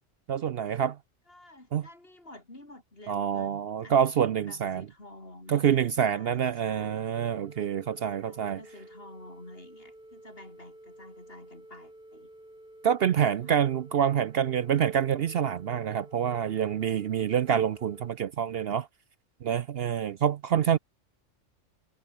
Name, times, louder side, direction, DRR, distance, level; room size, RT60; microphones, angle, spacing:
voice 1, 0.3-1.0 1.7-1.9 3.1-4.9 5.5-8.6 12.8-18.9 19.4-20.8, right 9 dB, 60° right, 0.8 m, -27 dB
voice 2, 1.3-3.6 3.8-4.1 4.5-7.1 8.2-12.3 13.4-13.5 20.6-20.8, left 1 dB, 50° left, 5.6 m, -50 dB
sound 1, 6.7-18.1, right 1 dB, 45° right, 7.9 m, -51 dB
omnidirectional pair, 1.3 m